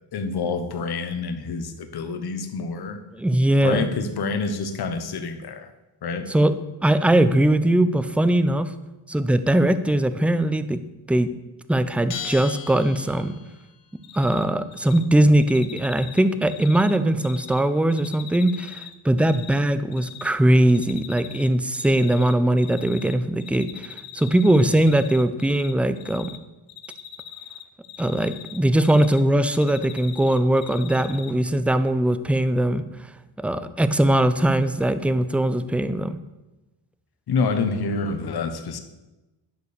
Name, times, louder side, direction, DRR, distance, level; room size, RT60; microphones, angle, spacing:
voice 1, 0.1-3.0 3.6-5.7 6.0-6.3 37.3-38.8, left 4 dB, 50° left, 7 dB, 1.4 m, -27 dB
voice 2, 3.1-3.9 6.3-6.5 6.8-8.7 9.1-10.8 11.1-11.3 11.7-13.3 14.1-26.3 28.0-32.8 33.4-36.2, right 1 dB, 5° right, 12 dB, 0.5 m, -20 dB
Bell, 12.1-13.7, left 7 dB, 85° left, 2.0 m, -36 dB
Cricket, 14.0-14.4 14.7-15.0 15.4-17.6 17.9-19.6 19.9-20.3 20.7-21.5 21.7-23.1 23.4-25.7 26.0-26.4 26.7-29.2 29.5-31.3, left 10 dB, 65° left, 1.2 m, -41 dB
11.0 x 6.9 x 6.8 m, 1.0 s
cardioid pair, 115°, 49 cm